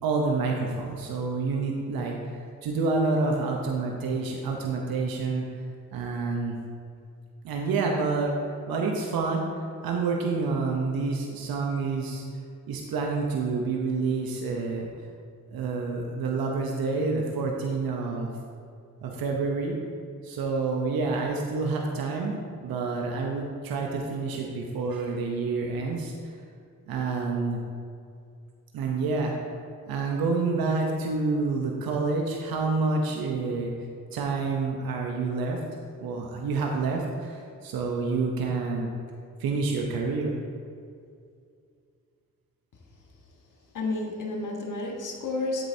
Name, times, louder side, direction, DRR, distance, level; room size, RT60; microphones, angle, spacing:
voice 1, 0.0-5.5 5.9-6.6 7.4-9.4 9.8-12.2 12.7-14.9 15.5-18.3 19.0-19.8 20.2-26.1 26.9-27.6 28.7-29.5 29.9-33.7 34.1-35.6 36.0-38.9 39.4-40.3, right 4 dB, 85° right, 0 dB, 0.8 m, -28 dB
voice 2, 43.7-45.7, left 2 dB, 60° left, 1 dB, 1.5 m, -31 dB
8.0 x 7.9 x 2.7 m, 2.3 s
supercardioid pair, 50°, 35 cm